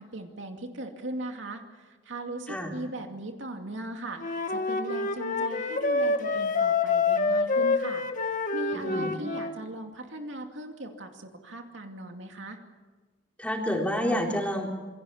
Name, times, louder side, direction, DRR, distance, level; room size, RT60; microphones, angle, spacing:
voice 1, 0.0-8.0 8.5-12.6, right 1 dB, 70° right, 4 dB, 2.5 m, -38 dB
Wind instrument woodwind instrument, 4.2-9.6, left 4 dB, 45° left, 1.7 m, -27 dB
voice 2, 8.7-9.1 13.4-14.7, equal, 5° left, 0 dB, 4.0 m, -29 dB
27.0 x 23.0 x 7.2 m, 1.3 s
head